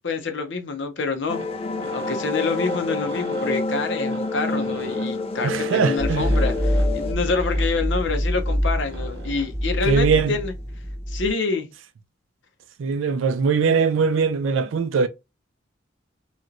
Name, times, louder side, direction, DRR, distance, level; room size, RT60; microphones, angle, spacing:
voice 1, 0.0-1.4 1.9-10.5 11.1-11.7, left 4 dB, 65° left, 0.7 m, -27 dB
sound 1, 1.1-9.6, right 2 dB, 60° right, 0.9 m, -42 dB
sound 2, 1.3-7.1, left 3 dB, 30° left, 0.4 m, -28 dB
voice 2, 5.4-6.3 9.8-10.4 12.8-15.1, right 5 dB, 85° right, 0.4 m, -21 dB
sound 3, 6.0-11.3, equal, 15° left, 0.8 m, -25 dB
3.0 x 2.8 x 2.5 m
head